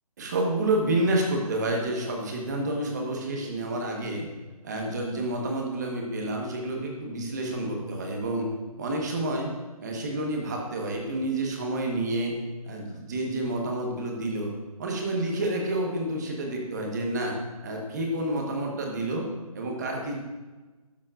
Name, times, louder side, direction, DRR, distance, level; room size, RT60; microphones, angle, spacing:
voice 1, 0.2-4.3 4.6-8.5 8.8-9.5 9.8-12.3 12.6-14.5 14.8-17.4 17.6-19.3 19.5-20.1, right 1 dB, 30° right, 1 dB, 1.3 m, -29 dB
12.5 x 7.4 x 2.5 m, 1.2 s
hypercardioid pair, 170°, 19 cm